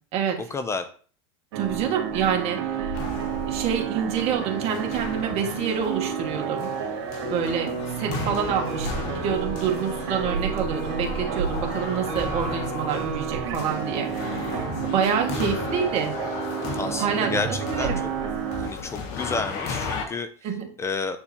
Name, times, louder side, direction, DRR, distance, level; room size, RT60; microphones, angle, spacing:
voice 1, 0.5-0.9 8.2-8.5 16.7-18.1 18.6-20.3 20.8-21.2, left 4 dB, 20° left, 10 dB, 0.5 m, -31 dB
voice 2, 1.5-3.0 3.5-6.7 7.2-16.1 17.0-18.0 20.4-20.7, right 7 dB, 50° right, 3 dB, 1.7 m, -27 dB
sound 1, 1.5-18.7, right 6 dB, 75° right, 2.0 m, -30 dB
sound 2, 2.9-20.1, left 5 dB, 55° left, 1.4 m, -35 dB
8.3 x 4.4 x 2.9 m, 0.44 s
hypercardioid pair, 105°, 14 cm